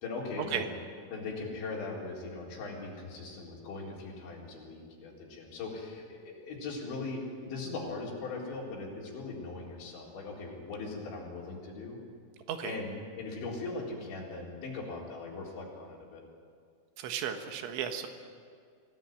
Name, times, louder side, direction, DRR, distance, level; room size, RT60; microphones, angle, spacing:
voice 1, 0.0-0.7 1.1-12.0 12.6-16.2, left 3 dB, 80° left, -3 dB, 6.3 m, -40 dB
voice 2, 17.0-18.1, right 9 dB, 85° right, 6 dB, 3.9 m, -34 dB
25.0 x 17.5 x 9.2 m, 2.2 s
omnidirectional pair, 5.2 m